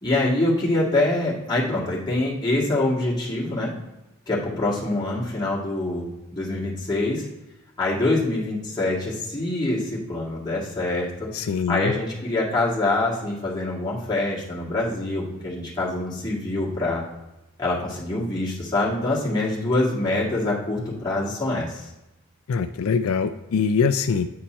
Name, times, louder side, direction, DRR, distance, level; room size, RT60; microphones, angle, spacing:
voice 1, 0.0-3.8 4.3-6.1 6.3-7.3 7.8-11.3 11.7-17.0 17.6-21.9, left 2 dB, 20° left, -6 dB, 1.9 m, -25 dB
voice 2, 11.3-11.9 22.5-24.3, left 5 dB, 80° left, 9 dB, 0.4 m, -23 dB
8.8 x 4.2 x 4.3 m, 0.98 s
head